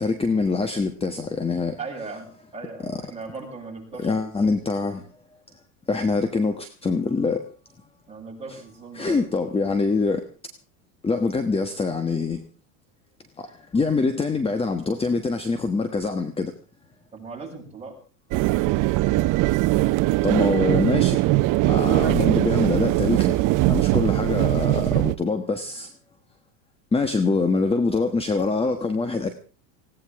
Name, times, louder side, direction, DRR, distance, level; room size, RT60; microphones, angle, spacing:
voice 1, 0.0-1.8 2.8-2.9 4.0-5.0 5.9-7.4 8.9-10.3 11.0-12.4 13.4-16.5 20.2-21.2 21.6-23.4 23.6-25.9 26.9-29.3, left 4 dB, 15° left, 8 dB, 1.3 m, -24 dB
voice 2, 1.8-4.6 8.1-9.3 17.1-18.0, right 4 dB, 15° right, -2 dB, 7.9 m, -38 dB
sound 1, 18.3-25.2, right 18 dB, 50° right, 0.8 m, -21 dB
20.0 x 17.0 x 3.6 m, 0.37 s
supercardioid pair, 120°, 41 cm